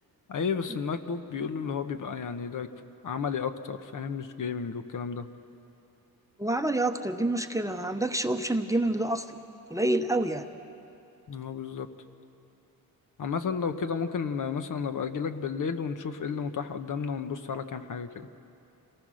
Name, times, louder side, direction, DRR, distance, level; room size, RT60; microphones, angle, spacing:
voice 1, 0.3-2.7 3.0-5.3 11.3-11.9 13.2-18.3, left 6 dB, 55° left, 9 dB, 1.1 m, -32 dB
voice 2, 6.4-9.4 9.7-10.5, right 1 dB, 10° right, 6 dB, 0.8 m, -27 dB
26.5 x 19.0 x 6.4 m, 2.8 s
cardioid pair, 95°, 37 cm